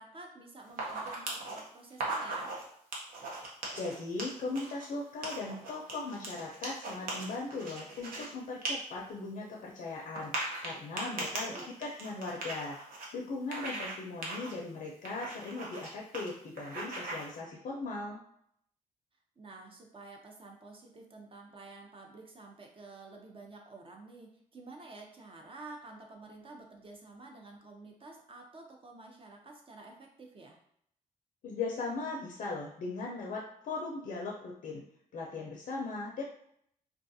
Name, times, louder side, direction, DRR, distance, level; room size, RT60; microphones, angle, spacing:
voice 1, 0.0-2.5 11.0-11.7 19.4-30.6, right 3 dB, 35° right, 1 dB, 0.6 m, -50 dB
sound 1, 0.7-1.6 1.9-2.6 2.9-4.8 5.2-8.3 8.6-8.7 9.1-9.2 10.2-13.1 13.5-14.0 14.2-14.5 15.1-15.9 16.1-16.3 16.6-17.3, right 2 dB, 75° right, 0.7 m, -38 dB
voice 2, 3.7-11.5 11.8-18.2 31.4-34.8 35.1-36.2, left 3 dB, 65° left, -1 dB, 0.5 m, -38 dB
2.4 x 2.3 x 2.6 m, 0.69 s
cardioid pair, 70°, 15 cm